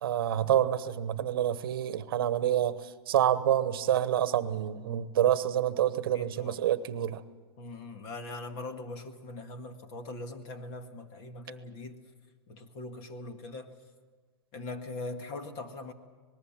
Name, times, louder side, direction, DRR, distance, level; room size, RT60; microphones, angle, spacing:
voice 1, 0.0-7.2, right 11 dB, 60° right, 13 dB, 1.1 m, -27 dB
voice 2, 6.1-6.6 7.6-12.0 12.5-13.7 14.5-15.9, left 2 dB, 30° left, 7 dB, 1.8 m, -41 dB
26.5 x 20.0 x 7.4 m, 1.4 s
supercardioid pair, 165°, 13 cm